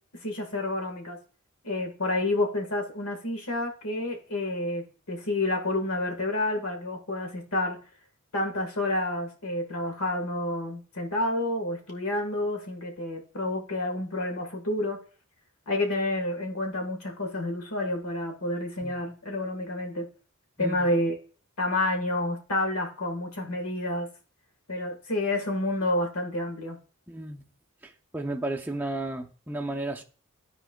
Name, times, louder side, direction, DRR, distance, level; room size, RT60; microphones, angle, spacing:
voice 1, 0.1-1.2 1.6-7.8 8.3-15.0 15.7-20.1 20.6-21.1 21.6-24.1 24.7-26.8, left 1 dB, 75° left, 1.5 m, -29 dB
voice 2, 20.6-20.9 27.1-27.5 27.8-30.0, right 2 dB, 10° right, 0.5 m, -33 dB
12.5 x 4.6 x 2.3 m
head